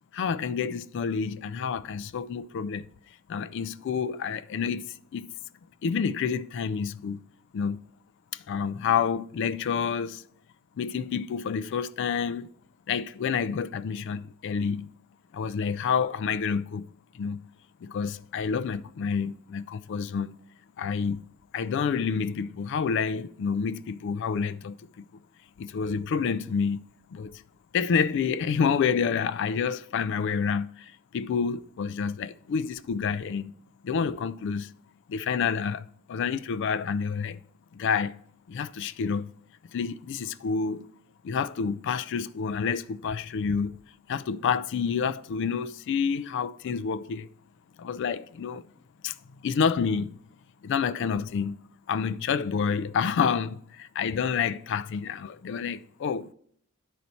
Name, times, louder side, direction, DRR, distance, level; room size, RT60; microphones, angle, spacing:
voice 1, 0.1-2.9 3.3-4.8 5.1-5.3 5.8-7.2 7.5-7.8 8.3-10.2 10.8-12.5 12.9-14.9 15.3-16.9 17.1-17.4 17.8-20.3 20.8-21.2 21.5-25.1 25.6-26.8 27.1-27.4 27.7-33.5 33.8-34.7 35.1-37.4 37.7-38.2 38.5-39.3 39.7-40.9 41.2-43.8 44.1-47.3 47.8-48.6 49.0-49.1 49.4-50.1 50.6-51.6 51.9-56.3, left 6 dB, 55° left, 0.3 m, -28 dB
9.9 x 4.1 x 4.3 m
head